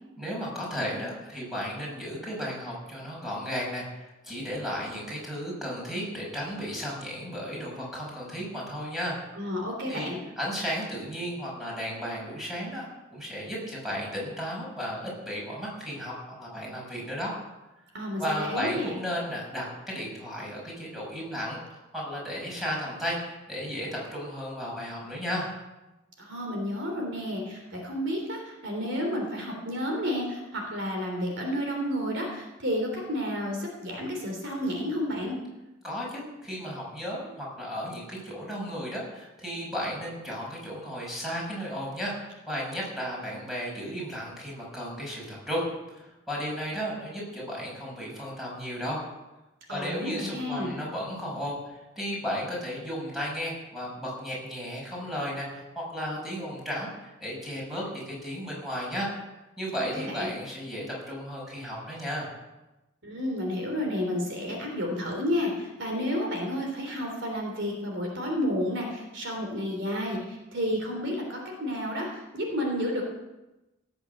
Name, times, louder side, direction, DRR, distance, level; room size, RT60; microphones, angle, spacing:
voice 1, 0.2-9.2 9.9-12.9 13.1-17.3 18.2-25.5 35.8-45.7 45.9-49.0 49.7-59.1 59.6-62.3, equal, ahead, -4 dB, 5.9 m, -34 dB
voice 2, 9.3-10.2 17.9-18.9 26.2-35.4 49.7-50.8 59.9-60.3 63.0-73.0, equal, 60° right, 1 dB, 3.4 m, -31 dB
17.0 x 7.9 x 7.9 m, 1.0 s
head